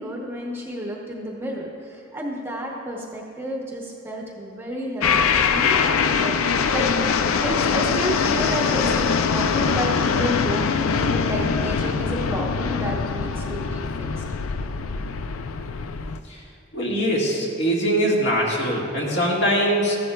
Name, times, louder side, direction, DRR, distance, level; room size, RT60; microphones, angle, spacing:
voice 1, 0.0-6.9 7.4-14.2, equal, 10° right, -2 dB, 0.8 m, -31 dB
sound 1, 5.0-16.2, left 5 dB, 85° left, 0.4 m, -23 dB
voice 2, 16.7-20.0, equal, 55° left, -3 dB, 1.7 m, -22 dB
14.0 x 11.0 x 2.3 m, 2.5 s
head